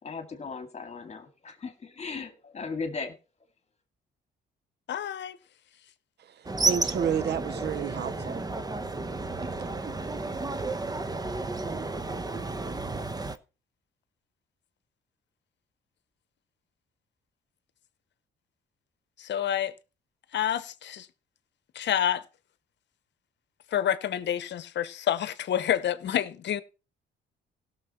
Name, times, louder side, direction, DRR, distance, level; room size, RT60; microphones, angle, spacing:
voice 1, 0.0-3.2, left 4 dB, 35° left, 2.1 m, -37 dB
voice 2, 4.9-5.4 19.2-19.7 20.3-21.1 21.7-22.2 23.7-26.6, left 10 dB, 65° left, 0.9 m, -28 dB
sound 1, 6.4-13.4, right 3 dB, 20° right, 0.9 m, -32 dB
voice 3, 6.6-8.4 9.4-9.7, right 8 dB, 55° right, 0.6 m, -30 dB
16.5 x 6.6 x 4.3 m
cardioid pair, 90°, 20 cm